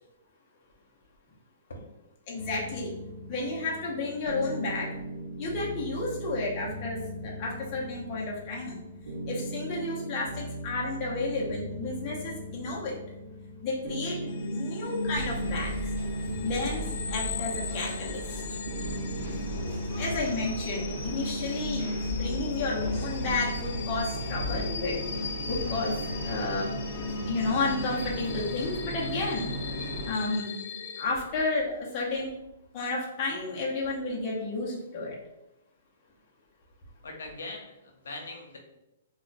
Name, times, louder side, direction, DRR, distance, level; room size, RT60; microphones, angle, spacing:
voice 1, 2.3-2.9 3.3-5.0 5.4-8.8 9.3-13.0 13.6-15.9 16.4-18.6 19.9-25.0 25.5-29.5 30.0-30.6 31.0-32.4 32.7-35.2, left 3 dB, 30° left, -4 dB, 0.7 m, -32 dB
sound 1, 2.4-19.7, right 1 dB, 75° right, 0.6 m, -39 dB
sound 2, 14.3-31.1, left 3 dB, 55° left, 0.3 m, -36 dB
sound 3, 15.1-30.1, equal, 50° right, 1.0 m, -36 dB
voice 2, 37.0-38.6, left 2 dB, 90° left, 0 dB, 0.7 m, -41 dB
2.4 x 2.2 x 3.9 m, 0.91 s
hypercardioid pair, 160°, 0 cm